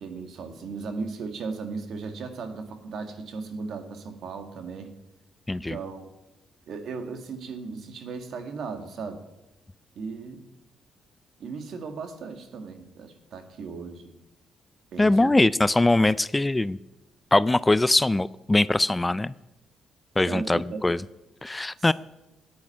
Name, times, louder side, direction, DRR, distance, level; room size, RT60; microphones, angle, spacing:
voice 1, 0.0-4.9 5.5-6.1 6.7-9.2 9.9-10.4 11.4-14.1 14.9-15.3 20.2-20.8, right 4 dB, 65° right, 7 dB, 1.8 m, -36 dB
voice 2, 15.0-16.8 17.3-19.3 20.2-21.0 21.4-21.9, left 2 dB, 15° left, 18 dB, 0.3 m, -22 dB
10.5 x 8.5 x 10.0 m, 0.98 s
cardioid pair, 90°, 0 cm